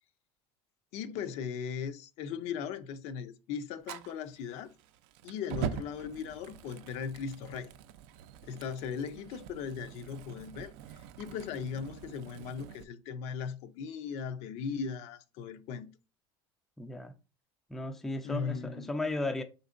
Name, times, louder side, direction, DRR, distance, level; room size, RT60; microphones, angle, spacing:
voice 1, 0.9-4.7 5.2-7.7 8.4-15.9 18.2-19.0, left 6 dB, 55° left, 0.5 m, -38 dB
Fire, 3.8-12.8, right 8 dB, 75° right, 0.4 m, -44 dB
voice 2, 16.8-17.1 17.7-19.4, left 2 dB, ahead, 0.3 m, -35 dB
4.2 x 3.9 x 2.4 m
cardioid pair, 145°, 13 cm